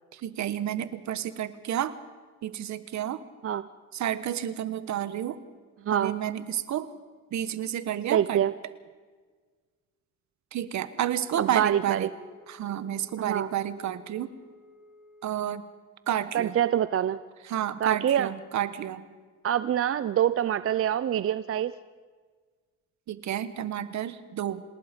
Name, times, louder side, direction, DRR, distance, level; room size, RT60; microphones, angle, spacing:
voice 1, 0.1-2.0 2.4-3.2 3.9-5.4 5.9-6.9 7.3-8.4 10.5-12.1 12.5-14.3 15.2-15.6 16.1-16.6 17.4-19.0 23.1-24.6, right 11 dB, 70° right, 14 dB, 1.3 m, -30 dB
voice 2, 8.1-8.5 11.4-12.1 13.2-13.5 16.3-17.2 17.8-18.3 19.4-21.7, right 10 dB, 50° right, 15 dB, 0.6 m, -25 dB
Wind instrument woodwind instrument, 11.4-15.6, left 2 dB, 5° left, 6.5 m, -55 dB
27.0 x 19.5 x 5.2 m, 1.5 s
cardioid pair, 90°, 30 cm